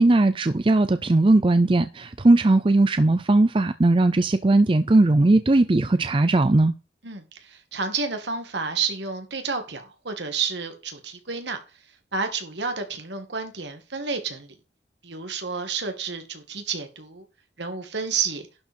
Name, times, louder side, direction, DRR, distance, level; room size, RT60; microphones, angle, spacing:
voice 1, 0.0-6.7, right 2 dB, 30° right, 0.5 m, -18 dB
voice 2, 7.0-11.6 12.1-14.5 15.0-17.2 17.6-18.5, right 5 dB, 70° right, 2.2 m, -30 dB
11.5 x 4.8 x 5.3 m
head